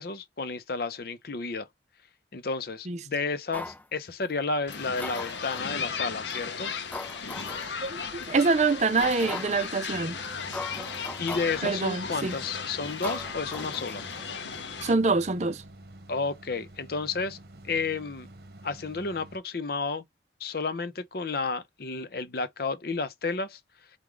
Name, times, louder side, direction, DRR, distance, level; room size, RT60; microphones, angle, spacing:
voice 1, 0.0-1.7 2.3-6.7 11.2-14.1 16.1-17.4 17.6-18.3 18.6-20.0 20.4-23.6, left 4 dB, 60° left, 0.6 m, -32 dB
sound 1, 3.5-3.8 4.7-5.7 6.3-6.4 6.9-7.7 8.2-8.3 9.0-9.6 10.2-10.3 10.5-11.6 12.2-12.5 13.0-14.2 14.5-14.6, left 2 dB, 10° left, 0.4 m, -39 dB
sound 2, 4.7-14.9, left 6 dB, 85° left, 0.8 m, -36 dB
voice 2, 7.8-10.2 11.6-12.4 14.8-15.6, right 3 dB, 40° right, 0.5 m, -25 dB
sound 3, 9.9-19.4, right 1 dB, 60° right, 1.0 m, -49 dB
4.6 x 2.3 x 3.8 m
head